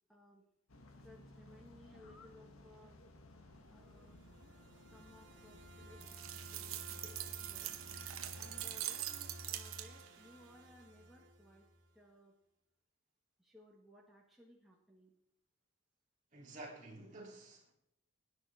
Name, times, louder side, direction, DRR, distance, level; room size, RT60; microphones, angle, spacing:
voice 1, 0.1-0.4 1.0-3.0 3.7-4.2 4.8-6.0 6.5-7.2 7.4-7.7 8.0-11.7 11.9-12.3 13.4-15.2, left 1 dB, ahead, 1.7 m, -61 dB
sound 1, 0.7-8.9, left 1 dB, 85° left, 1.4 m, -59 dB
sound 2, 3.7-11.9, right 1 dB, 55° right, 2.6 m, -55 dB
sound 3, 6.0-10.2, right 12 dB, 85° right, 1.0 m, -43 dB
voice 2, 16.3-17.7, right 2 dB, 35° right, 3.2 m, -51 dB
18.0 x 10.5 x 3.6 m
head